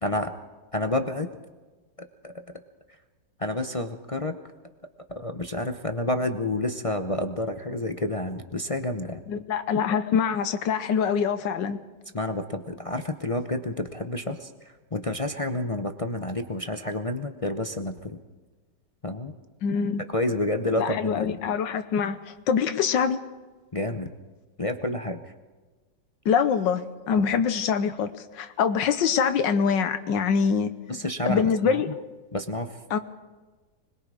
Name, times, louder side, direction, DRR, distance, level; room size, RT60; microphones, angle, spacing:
voice 1, 0.0-0.3 0.7-1.3 2.2-2.3 3.4-4.4 5.1-9.2 12.1-18.2 19.0-19.3 20.1-21.4 23.7-24.1 24.6-25.3 27.2-27.3 30.9-31.8 32.3-32.8, left 1 dB, 35° left, 7 dB, 0.5 m, -29 dB
voice 2, 9.3-11.8 19.6-20.0 20.8-22.2 22.5-23.2 26.2-30.7 31.3-32.0 32.9-33.0, left 6 dB, 85° left, 9 dB, 1.6 m, -24 dB
25.5 x 21.0 x 4.9 m, 1.3 s
omnidirectional pair, 1.9 m